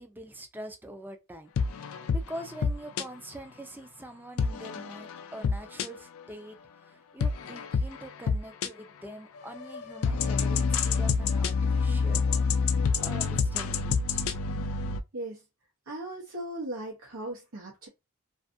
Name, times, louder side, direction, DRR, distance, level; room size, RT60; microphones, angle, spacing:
voice 1, 0.0-1.8 2.1-12.2 12.6-14.3, right 1 dB, 10° right, 0.4 m, -44 dB
sound 1, 1.6-3.0 4.4-6.2 7.2-8.7 9.4-15.0, left 5 dB, 75° left, 0.3 m, -28 dB
voice 2, 15.9-17.9, right 1 dB, 85° right, 0.8 m, -37 dB
2.5 x 2.4 x 2.5 m
head